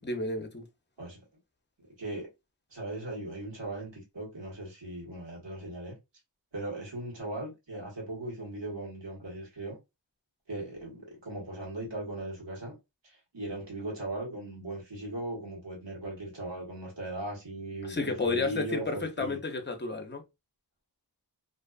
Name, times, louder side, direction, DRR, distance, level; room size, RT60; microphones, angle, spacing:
voice 1, 0.0-0.7 17.8-20.2, left 3 dB, 25° left, 0.6 m, -31 dB
voice 2, 1.8-2.3 2.7-6.0 6.5-9.8 10.5-12.7 13.0-19.4, right 1 dB, 75° right, 1.4 m, -38 dB
2.5 x 2.4 x 2.3 m
wide cardioid pair, 45°, 44 cm